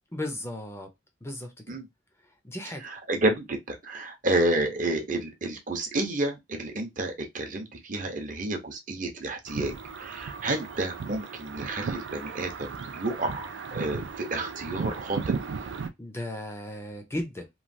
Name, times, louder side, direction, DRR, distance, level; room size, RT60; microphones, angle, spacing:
voice 1, 0.1-0.9 1.2-1.7 2.4-2.8 16.0-17.5, left 1 dB, 15° left, 0.5 m, -35 dB
voice 2, 3.1-9.7 10.0-12.5 12.9-15.3, right 2 dB, 45° right, 0.7 m, -30 dB
sound 1, 9.5-15.9, right 5 dB, 75° right, 0.4 m, -35 dB
3.1 x 2.3 x 2.6 m
head